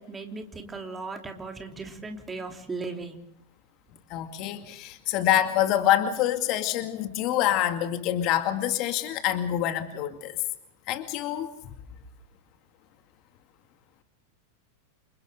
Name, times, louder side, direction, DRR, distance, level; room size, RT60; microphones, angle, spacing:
voice 1, 0.0-3.2, right 3 dB, 15° right, 4 dB, 3.2 m, -37 dB
voice 2, 4.1-10.4 10.9-11.5, left 12 dB, 40° left, 8 dB, 2.2 m, -26 dB
29.5 x 28.0 x 3.8 m, 0.72 s
figure-of-eight pair, 90°, 0 cm